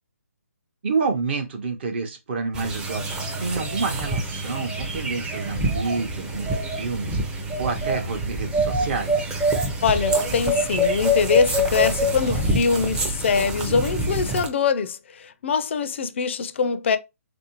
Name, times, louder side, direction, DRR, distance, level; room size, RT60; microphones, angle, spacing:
voice 1, 0.8-9.3, right 4 dB, 45° right, 0.7 m, -29 dB
sound 1, 2.5-14.5, equal, 10° right, 0.5 m, -25 dB
voice 2, 9.8-17.0, left 5 dB, 50° left, 0.4 m, -23 dB
3.5 x 2.5 x 2.9 m
hypercardioid pair, 145°, 8 cm